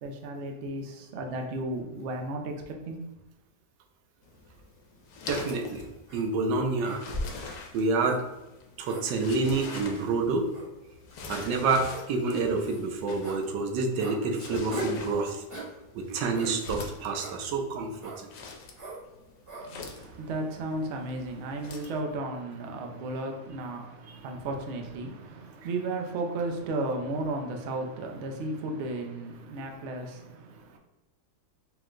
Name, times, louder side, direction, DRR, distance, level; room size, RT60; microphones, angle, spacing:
voice 1, 0.0-2.5 2.9-3.1 19.6-30.8, right 2 dB, 65° right, 0.7 m, -34 dB
sound 1, 4.2-22.0, left 3 dB, 90° left, 1.3 m, -44 dB
voice 2, 5.3-5.9 6.1-7.0 7.3-8.2 8.8-10.5 11.3-15.4 15.9-18.3 24.1-24.2, right 3 dB, 90° right, 1.3 m, -28 dB
sound 2, 5.4-5.6 6.1-6.2 6.8-7.4 8.0-8.2 8.8-9.1 9.7-9.8 10.5-10.7 11.3-11.4 11.9-12.0 12.6-12.8 13.2-13.4 14.0-14.2 14.7-15.0 15.5-15.7 16.3-16.5 17.2-17.4 18.0-18.2 18.8-19.0 19.5-19.7, right 1 dB, 25° right, 0.9 m, -38 dB
4.7 x 2.1 x 3.7 m
omnidirectional pair, 1.9 m